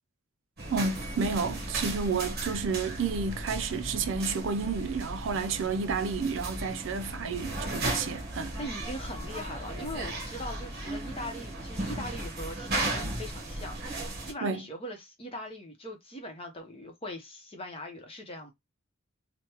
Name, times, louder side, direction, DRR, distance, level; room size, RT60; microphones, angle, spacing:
sound 1, 0.6-14.3, right 1 dB, 50° right, 1.1 m, -36 dB
voice 1, 0.7-8.5 14.4-14.7, right 5 dB, 65° right, 0.4 m, -31 dB
voice 2, 8.3-18.5, left 1 dB, 30° left, 0.8 m, -41 dB
3.4 x 2.1 x 2.9 m
head